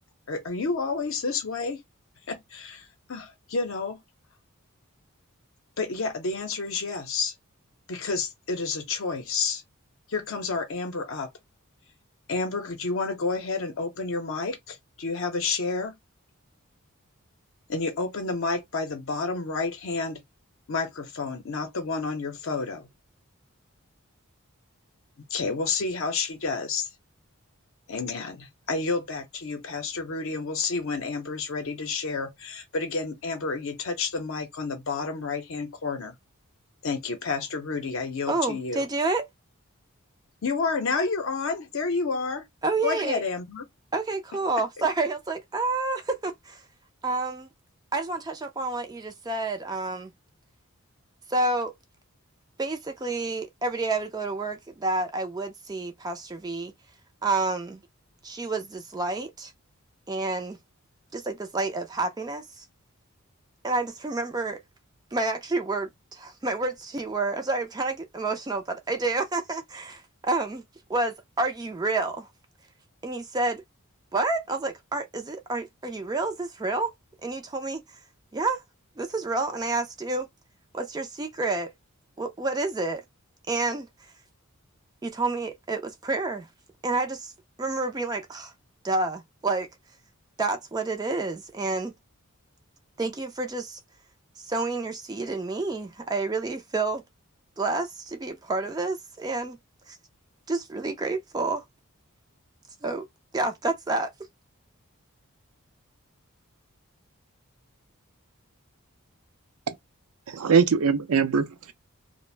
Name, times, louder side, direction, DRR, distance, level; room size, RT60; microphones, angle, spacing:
voice 1, 0.3-1.8 2.3-4.0 5.8-7.3 7.9-9.6 10.1-11.3 12.3-16.0 17.7-20.2 20.7-22.9 25.3-26.9 27.9-36.2 36.8-38.9 40.4-42.4 42.8-43.7, left 4 dB, 65° left, 0.6 m, -30 dB
voice 2, 38.3-39.3 42.6-43.2 43.9-46.6 47.0-47.5 47.9-50.1 51.3-51.7 52.6-56.7 57.2-57.8 58.2-59.5 60.1-60.6 61.1-62.6 63.6-64.6 65.1-70.6 70.9-72.3 73.0-73.6 74.1-76.9 77.2-77.8 78.3-78.6 79.0-80.3 80.7-81.7 82.2-83.0 83.5-83.9 85.0-86.5 86.8-87.3 87.6-88.5 88.8-89.7 90.4-91.9 93.0-93.8 94.4-97.0 97.6-99.6 99.9-100.0 100.5-101.6 102.8-103.0 103.3-104.1, right 3 dB, 20° right, 0.3 m, -29 dB
voice 3, 110.3-111.7, right 5 dB, 85° right, 0.5 m, -22 dB
2.4 x 2.0 x 3.1 m
head